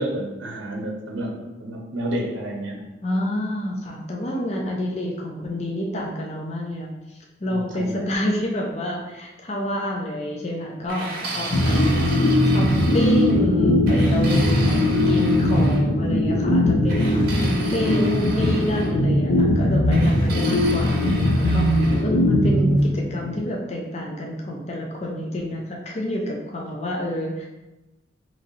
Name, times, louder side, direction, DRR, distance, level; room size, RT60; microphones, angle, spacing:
voice 1, 0.0-2.8 7.5-8.0 11.3-11.4 14.9-15.4, right 1 dB, 80° right, 0 dB, 0.7 m, -31 dB
voice 2, 3.0-12.2 12.5-14.8 15.1-21.7 22.0-27.5, left 1 dB, 35° left, -1 dB, 0.5 m, -28 dB
sound 1, 10.9-13.4 13.9-15.8 16.9-18.9 19.9-22.0, right 2 dB, 50° right, 0.8 m, -34 dB
sound 2, 11.5-23.4, left 1 dB, 80° left, 0.6 m, -19 dB
3.0 x 2.7 x 3.9 m, 1.0 s
head